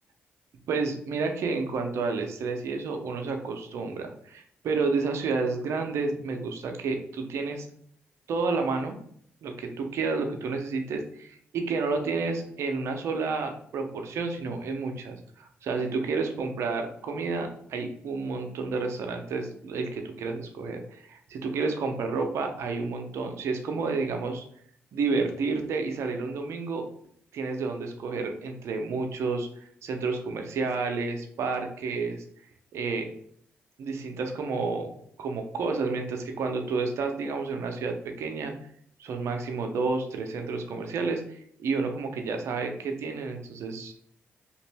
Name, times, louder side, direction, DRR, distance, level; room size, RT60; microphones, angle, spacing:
voice 1, 0.7-7.7 8.3-9.0 9.4-24.4 24.9-26.9 27.3-29.5 29.8-32.2 32.7-33.1 33.8-34.9 35.2-38.5 39.0-43.9, right 4 dB, 75° right, 4 dB, 0.6 m, -30 dB
2.9 x 2.5 x 3.3 m, 0.64 s
supercardioid pair, 55°, 5 cm